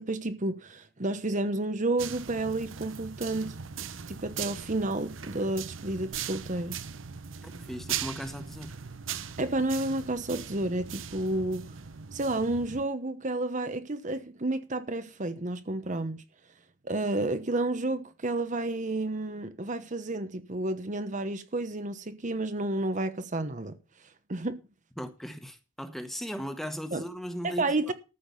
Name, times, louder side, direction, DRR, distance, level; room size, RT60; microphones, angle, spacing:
voice 1, 0.0-3.5 4.1-6.8 9.4-11.7 12.1-16.2 16.8-23.7 24.3-24.6 26.9-27.0 27.4-27.9, right 2 dB, 40° right, 1.0 m, -31 dB
sound 1, 2.0-12.8, right 8 dB, 80° right, 0.9 m, -39 dB
voice 2, 7.4-8.7 25.0-27.9, equal, ahead, 1.5 m, -37 dB
14.0 x 6.2 x 7.0 m
head